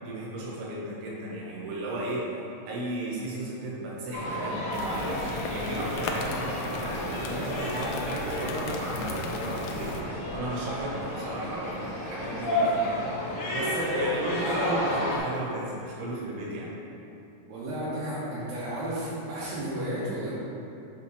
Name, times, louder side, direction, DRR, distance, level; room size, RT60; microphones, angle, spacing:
voice 1, 0.0-2.3 2.6-11.7 12.1-13.1 13.5-16.7, right 1 dB, 90° right, -5 dB, 3.6 m, -34 dB
sound 1, 4.1-15.2, left 1 dB, 60° left, 1.8 m, -31 dB
sound 2, 4.7-10.0, left 3 dB, 85° left, 2.4 m, -37 dB
voice 2, 17.5-20.3, right 1 dB, 75° right, -11 dB, 3.0 m, -33 dB
7.4 x 5.8 x 3.2 m, 2.8 s
omnidirectional pair, 5.1 m